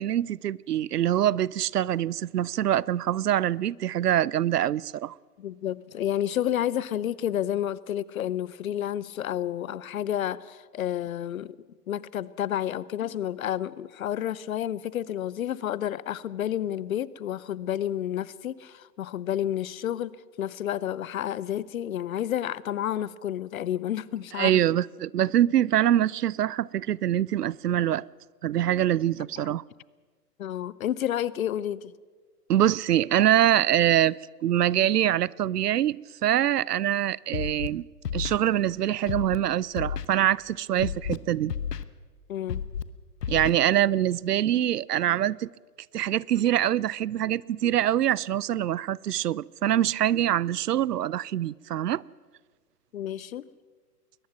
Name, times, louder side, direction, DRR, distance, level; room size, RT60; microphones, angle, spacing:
voice 1, 0.0-5.1 24.4-28.1 28.4-29.6 32.5-37.8 38.1-41.5 43.3-45.5 45.9-52.0, right 11 dB, 75° right, 0.6 m, -24 dB
voice 2, 5.4-11.6 11.9-24.6 30.4-31.9 42.3-42.6 52.9-53.4, left 11 dB, 60° left, 0.8 m, -30 dB
Scratching (performance technique), 37.3-37.7 38.0-38.4 39.1-39.4 39.8-40.1 40.8-41.2 41.5-41.8 42.5-42.8 43.2-43.5, left 8 dB, 75° left, 1.2 m, -31 dB
21.5 x 20.0 x 6.0 m
figure-of-eight pair, 120°, 48 cm